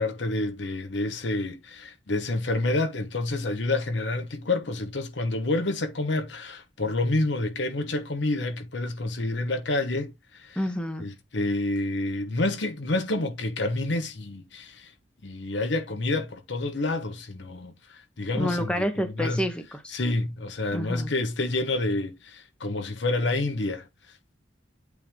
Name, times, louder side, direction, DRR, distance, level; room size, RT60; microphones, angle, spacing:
voice 1, 0.0-10.6 11.0-14.9 15.2-18.8 19.2-19.4 19.9-23.8, left 2 dB, 70° left, 1.1 m, -28 dB
voice 2, 10.6-11.1 18.3-20.0 20.7-21.1, equal, 5° left, 1.0 m, -29 dB
8.5 x 3.4 x 3.5 m
head